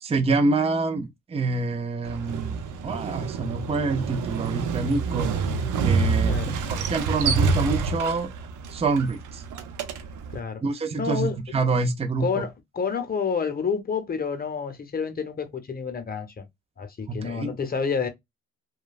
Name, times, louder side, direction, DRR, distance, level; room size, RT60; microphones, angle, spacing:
voice 1, 0.0-5.3 5.8-8.3 8.7-9.4 10.6-12.5 17.1-17.5, right 3 dB, 20° right, 0.5 m, -26 dB
Motorcycle, 2.0-10.4, right 4 dB, 80° right, 0.6 m, -27 dB
voice 2, 11.0-11.4 12.2-16.4 16.8-18.1, left 6 dB, 30° left, 0.8 m, -29 dB
3.0 x 2.3 x 2.3 m
cardioid pair, 90°, 30 cm